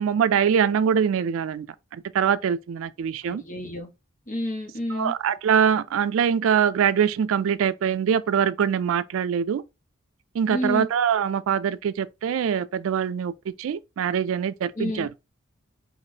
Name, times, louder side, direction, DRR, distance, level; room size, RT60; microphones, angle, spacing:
voice 1, 0.0-1.7 2.1-3.4 4.9-9.6 10.4-13.3 13.6-15.1, right 7 dB, 70° right, 0.3 m, -23 dB
voice 2, 3.2-3.9 4.3-5.1 10.5-10.9 14.7-15.1, left 1 dB, 40° left, 1.1 m, -29 dB
4.9 x 2.5 x 2.8 m
head